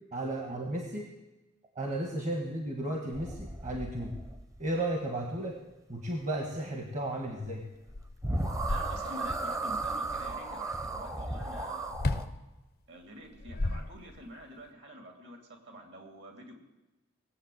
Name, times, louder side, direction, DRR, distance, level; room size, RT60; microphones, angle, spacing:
voice 1, 0.1-1.1 1.7-4.2 4.6-5.6 5.9-7.6, right 1 dB, 35° right, 2 dB, 1.5 m, -34 dB
sound 1, 3.1-4.7 7.9-8.0 8.2-12.3, right 2 dB, 15° right, 1.0 m, -35 dB
sound 2, 7.4-7.5 7.9-9.4 11.9-12.4 13.2-14.4, left 2 dB, 50° left, 0.7 m, -34 dB
voice 2, 8.7-11.9 12.9-15.4 15.7-16.6, equal, 55° right, 3 dB, 2.8 m, -46 dB
18.5 x 7.9 x 7.9 m, 1.1 s
head